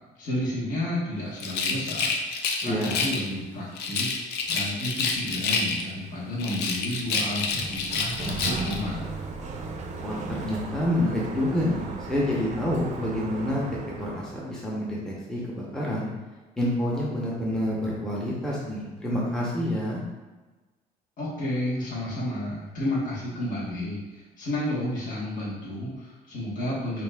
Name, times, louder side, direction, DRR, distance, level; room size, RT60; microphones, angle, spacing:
voice 1, 0.2-4.2 4.5-9.2 21.2-27.0, left 1 dB, 50° left, -7 dB, 1.2 m, -31 dB
Rattle, 1.4-3.3 3.8-6.0 6.4-8.8, left 4 dB, 80° left, 0.5 m, -28 dB
voice 2, 2.6-3.0 10.0-16.1 16.6-20.0, left 1 dB, 5° left, -5 dB, 0.7 m, -28 dB
Sliding door, 7.3-14.6, right 3 dB, 45° right, 0.5 m, -36 dB
5.3 x 2.5 x 2.2 m, 1.2 s
cardioid pair, 110°, 17 cm